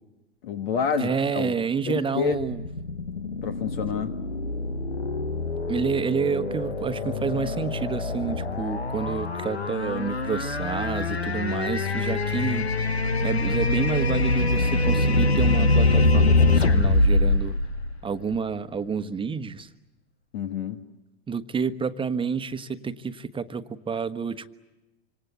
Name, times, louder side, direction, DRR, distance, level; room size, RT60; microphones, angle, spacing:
voice 1, 0.4-1.5 1.9-2.4 3.4-4.1 20.3-20.8, left 7 dB, 65° left, 8 dB, 1.7 m, -28 dB
voice 2, 1.0-2.6 5.7-12.7 13.2-17.6 18.0-19.7 21.3-24.5, right 5 dB, 15° right, 11 dB, 1.2 m, -29 dB
sound 1, 2.3-18.5, left 2 dB, 90° left, 1.2 m, -24 dB
26.5 x 26.0 x 8.1 m, 1.1 s
figure-of-eight pair, 85°, 31 cm